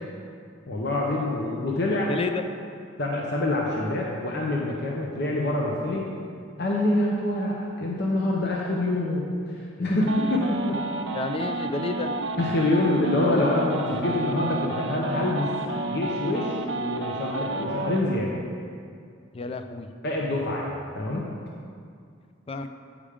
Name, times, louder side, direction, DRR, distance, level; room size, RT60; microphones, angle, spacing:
voice 1, 0.7-2.1 3.0-6.1 6.6-10.8 12.4-15.5 15.8-18.3 20.0-21.2, left 1 dB, 55° left, -2 dB, 0.8 m, -26 dB
voice 2, 2.1-2.4 11.1-12.1 19.3-19.9 22.5-22.7, left 3 dB, 30° left, 8 dB, 0.3 m, -30 dB
sound 1, 10.0-18.0, right 2 dB, 60° right, 0.5 m, -31 dB
8.6 x 5.0 x 5.0 m, 2.3 s
head